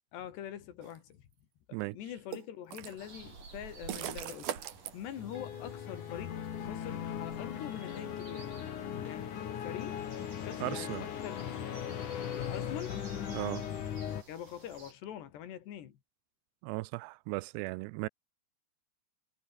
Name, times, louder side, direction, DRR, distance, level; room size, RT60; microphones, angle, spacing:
voice 1, 0.1-1.3 1.7-4.5 4.9-8.5 9.0-10.0 10.4-11.6 12.4-13.1 14.3-16.0, left 10 dB, 80° left, 4.4 m, -44 dB
sound 1, 0.8-1.0 2.3-3.0 3.9-4.9, right 11 dB, 65° right, 3.5 m, -39 dB
sound 2, 3.0-14.9, right 4 dB, 50° right, 8.5 m, -54 dB
sound 3, 5.2-14.2, left 9 dB, 55° left, 3.2 m, -38 dB
voice 2, 10.6-11.0 13.3-13.6 16.6-18.1, right 22 dB, 85° right, 2.7 m, -36 dB
omnidirectional pair, 4.8 m